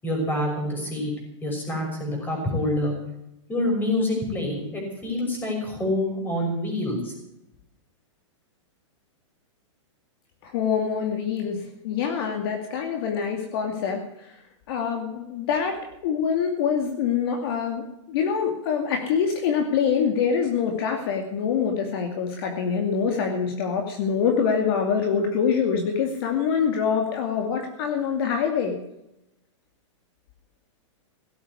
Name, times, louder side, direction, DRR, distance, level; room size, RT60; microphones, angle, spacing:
voice 1, 0.0-1.1 1.4-2.9 3.5-7.1, left 1 dB, 10° left, 1 dB, 6.1 m, -26 dB
voice 2, 10.4-14.3 14.7-28.7, left 6 dB, 50° left, 3 dB, 2.5 m, -25 dB
17.0 x 8.6 x 9.7 m, 0.84 s
hypercardioid pair, 155°, 16 cm